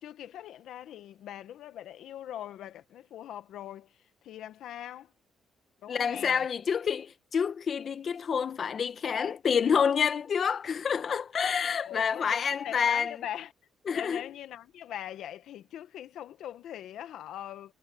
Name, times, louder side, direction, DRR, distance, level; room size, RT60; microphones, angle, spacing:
voice 1, 0.0-3.9 4.2-5.1 5.8-6.4 11.8-13.5 13.9-17.7, left 11 dB, 80° left, 1.3 m, -42 dB
voice 2, 5.9-13.1 13.9-14.2, left 7 dB, 50° left, 1.4 m, -28 dB
cardioid pair, 90°, 0 cm